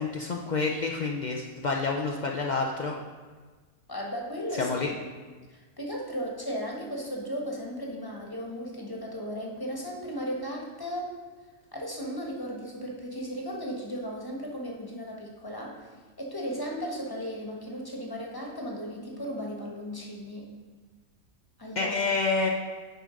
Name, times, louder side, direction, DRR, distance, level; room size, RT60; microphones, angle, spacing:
voice 1, 0.0-2.9 4.6-4.9 21.8-22.5, left 4 dB, 75° left, 0 dB, 0.4 m, -28 dB
voice 2, 3.9-4.7 5.5-11.1 11.7-15.9 16.2-20.5 21.6-22.0, equal, 15° left, -1 dB, 1.2 m, -36 dB
9.2 x 5.0 x 5.1 m, 1.4 s
omnidirectional pair, 1.6 m